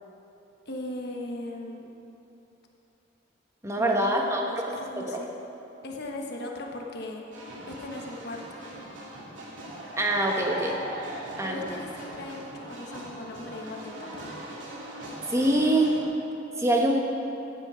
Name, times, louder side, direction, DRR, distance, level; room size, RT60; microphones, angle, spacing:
voice 1, 0.7-1.9 3.8-5.3 5.8-7.2 7.7-8.6 11.4-14.2, left 1 dB, 60° left, 0 dB, 1.3 m, -38 dB
voice 2, 3.6-4.7 5.0-5.2 10.0-10.8 11.4-11.6 15.3-15.9 16.6-17.0, right 1 dB, 15° right, 0 dB, 1.2 m, -24 dB
sound 1, 7.3-16.0, right 1 dB, 80° right, 2.4 m, -40 dB
15.0 x 8.9 x 5.0 m, 2.9 s
head